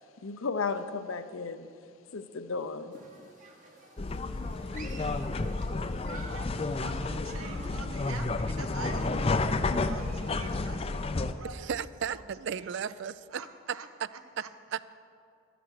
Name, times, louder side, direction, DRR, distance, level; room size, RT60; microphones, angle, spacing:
voice 1, 0.2-1.7 2.1-3.0, left 4 dB, 75° left, 11 dB, 0.6 m, -34 dB
Human group actions, 2.9-10.5, right 3 dB, 35° right, 1.1 m, -51 dB
sound 1, 4.0-11.3, left 3 dB, 25° left, 0.4 m, -31 dB
voice 2, 6.1-11.8 12.1-12.7 13.3-13.9 14.4-14.5, right 4 dB, 85° right, 7 dB, 1.1 m, -45 dB
voice 3, 11.5-13.4 13.7-14.1 14.4-14.8, right 7 dB, 55° right, 17 dB, 0.3 m, -35 dB
12.5 x 10.0 x 6.4 m, 2.5 s
head